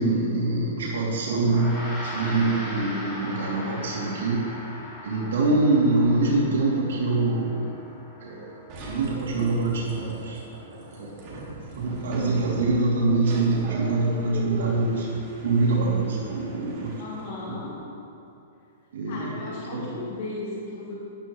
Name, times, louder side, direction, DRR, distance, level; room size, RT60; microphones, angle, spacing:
voice 1, 0.0-4.4 5.0-7.7 8.2-10.4 10.9-11.5 11.8-15.1 15.4-16.9 17.5-17.6 18.9-19.3 19.7-19.9, right 3 dB, 80° right, -5 dB, 2.8 m, -24 dB
Gong, 1.4-11.0, left 1 dB, 10° left, 2.7 m, -40 dB
sound 1, 8.7-17.4, right 1 dB, 30° right, 2.2 m, -40 dB
voice 2, 17.0-17.8 19.0-21.0, left 2 dB, 50° left, -5 dB, 2.1 m, -36 dB
13.5 x 10.5 x 3.2 m, 2.8 s
hypercardioid pair, 165°, 0 cm